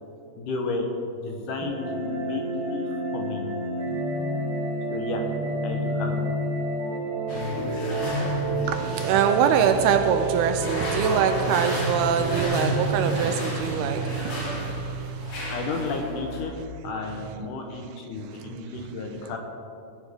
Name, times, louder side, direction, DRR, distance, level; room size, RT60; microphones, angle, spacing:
voice 1, 0.4-3.5 4.9-5.2 5.6-6.2 15.5-16.5 16.8-19.4, left 3 dB, 70° left, 3 dB, 2.0 m, -32 dB
sound 1, 1.6-12.4, right 1 dB, 50° right, 2.6 m, -30 dB
sound 2, 7.3-16.4, equal, 50° left, 4.4 m, -32 dB
voice 2, 8.7-15.5 18.4-18.6, right 7 dB, 80° right, 8 dB, 2.4 m, -24 dB
18.5 x 10.0 x 3.6 m, 2.7 s
omnidirectional pair, 4.8 m